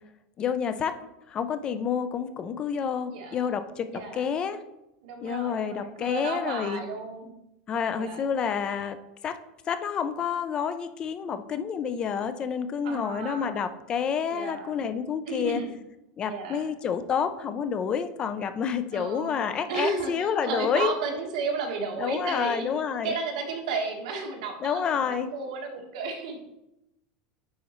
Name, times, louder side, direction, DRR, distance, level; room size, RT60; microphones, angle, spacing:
voice 1, 0.4-1.0 1.3-4.6 5.2-6.8 7.7-9.0 9.2-9.4 9.7-15.6 16.2-20.9 22.0-23.1 24.6-25.3, left 7 dB, 20° left, 10 dB, 0.3 m, -29 dB
voice 2, 3.9-4.2 5.0-7.3 7.9-8.2 12.8-13.6 14.3-14.8 15.2-15.7 16.3-16.7 18.9-22.7 23.0-26.5, right 4 dB, 75° right, 2 dB, 1.4 m, -33 dB
9.4 x 4.1 x 3.0 m, 0.89 s
supercardioid pair, 170°, 4 cm